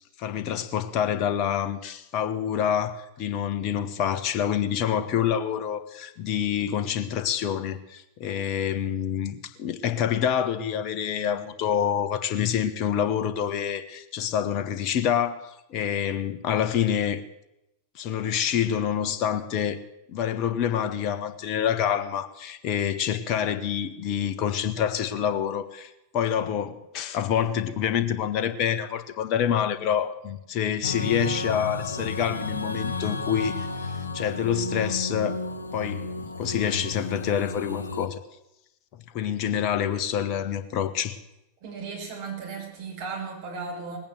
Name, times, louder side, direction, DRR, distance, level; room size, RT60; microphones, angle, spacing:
voice 1, 0.2-17.2 17.9-19.8 20.1-35.4 35.7-36.0 36.3-38.2 39.1-41.2, left 9 dB, 40° left, 1.3 m, -27 dB
sound 1, 30.8-38.1, left 3 dB, 80° left, 1.2 m, -32 dB
voice 2, 41.6-44.0, right 4 dB, 50° right, 5.9 m, -35 dB
19.5 x 8.9 x 7.9 m
figure-of-eight pair, 90°, 0 cm